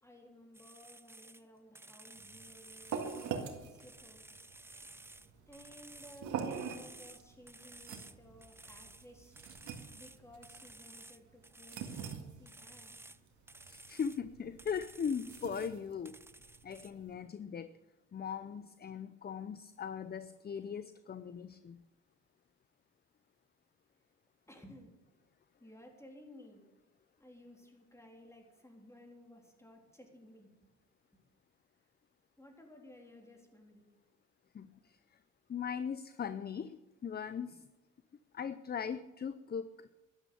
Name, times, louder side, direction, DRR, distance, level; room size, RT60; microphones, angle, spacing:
voice 1, 0.0-4.3 5.5-9.4 9.9-12.9 24.5-25.0 25.6-26.7 27.2-30.5 32.4-33.9, equal, 10° left, 2 dB, 3.6 m, -56 dB
sound 1, 0.5-1.4 1.8-3.5 3.8-6.3 6.5-8.2 8.4-9.1 9.4-12.2 12.5-13.2 13.5-14.2 14.6-15.8 16.1-16.9, right 2 dB, 10° right, 0.6 m, -54 dB
sound 2, 2.1-17.1, right 6 dB, 75° right, 2.0 m, -45 dB
voice 2, 13.7-16.2 16.6-17.7 18.1-21.8 34.5-35.2 35.5-37.7 38.3-40.0, left 7 dB, 30° left, 13 dB, 0.6 m, -39 dB
12.5 x 11.5 x 7.0 m, 1.1 s
cardioid pair, 90°, 30 cm